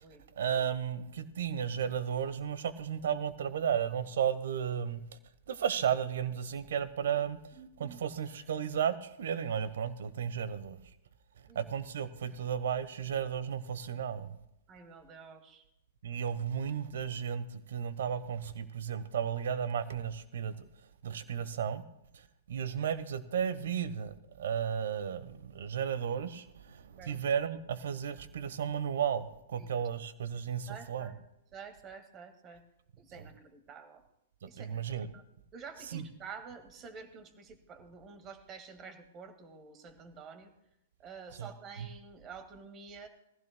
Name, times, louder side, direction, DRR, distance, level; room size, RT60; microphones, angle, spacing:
voice 1, 0.4-5.0 5.5-7.4 7.8-10.8 11.5-14.4 16.0-20.5 21.0-21.8 22.5-31.1 34.4-35.1 35.9-36.0 41.4-41.5 41.8-41.9, right 8 dB, 65° right, 14 dB, 1.0 m, -34 dB
voice 2, 7.5-8.0 11.5-11.8 14.7-15.6 26.9-27.4 29.6-29.7 30.7-31.2 31.5-32.6 33.0-34.0 34.5-34.8 35.1-35.2 35.5-40.5 41.0-43.1, right 5 dB, 30° right, 7 dB, 1.8 m, -49 dB
20.0 x 15.0 x 2.2 m, 0.84 s
figure-of-eight pair, 110°, 0 cm